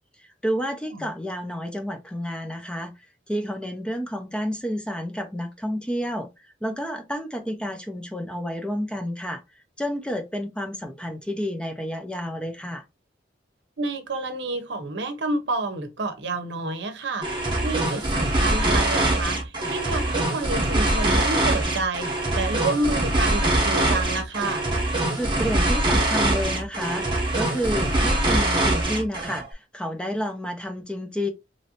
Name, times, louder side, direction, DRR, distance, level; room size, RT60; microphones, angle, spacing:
voice 1, 0.4-9.4 9.8-12.8 25.1-31.3, equal, 5° left, 0.5 m, -30 dB
voice 2, 13.8-24.7, right 2 dB, 65° right, 0.8 m, -29 dB
sound 1, 17.2-29.4, right 1 dB, 25° right, 0.9 m, -23 dB
3.1 x 2.6 x 2.8 m
head